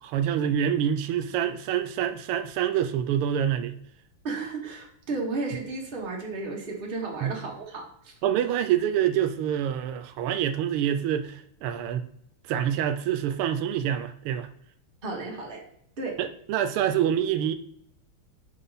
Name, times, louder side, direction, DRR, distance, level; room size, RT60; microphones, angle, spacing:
voice 1, 0.0-3.8 7.2-7.3 8.2-12.1 12.5-14.5 16.2-17.5, right 9 dB, 85° right, 10 dB, 1.5 m, -26 dB
voice 2, 4.2-8.1 15.0-15.6 16.0-16.2, right 3 dB, 30° right, -1 dB, 1.4 m, -33 dB
5.7 x 5.6 x 4.0 m, 0.69 s
omnidirectional pair, 2.4 m